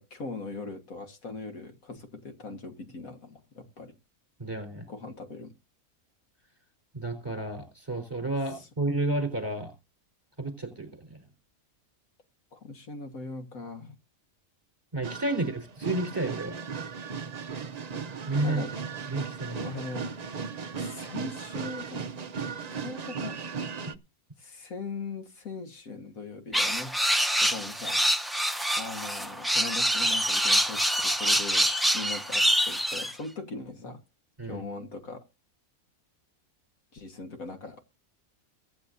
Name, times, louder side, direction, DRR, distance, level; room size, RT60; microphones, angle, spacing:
voice 1, 0.0-3.9 4.9-5.5 8.5-8.7 12.5-14.0 18.4-18.7 19.6-20.2 20.8-22.0 22.7-23.5 24.4-26.9 27.4-28.1 28.8-31.7 31.9-34.0 34.4-35.3 36.9-37.8, left 3 dB, 70° left, 6 dB, 2.0 m, -40 dB
voice 2, 4.4-4.9 6.9-9.7 10.4-11.2 14.9-16.6 18.3-18.6 19.0-19.7 34.4-34.6, right 2 dB, 15° right, 6 dB, 4.2 m, -31 dB
sound 1, 15.0-23.9, right 5 dB, 45° right, 0.5 m, -37 dB
sound 2, 26.5-33.1, equal, ahead, 0.5 m, -25 dB
23.0 x 9.2 x 2.6 m, 0.27 s
omnidirectional pair, 1.5 m